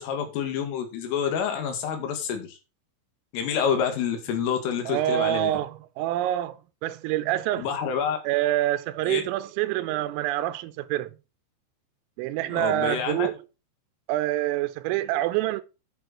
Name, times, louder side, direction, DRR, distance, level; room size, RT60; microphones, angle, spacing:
voice 1, 0.0-2.6 3.3-5.5 7.6-8.2 9.1-9.2 12.5-13.3, left 7 dB, 80° left, 4.6 m, -28 dB
voice 2, 4.9-7.7 8.2-11.1 12.2-13.4 14.1-15.6, right 14 dB, 85° right, 3.4 m, -26 dB
10.5 x 6.3 x 4.4 m
omnidirectional pair, 5.8 m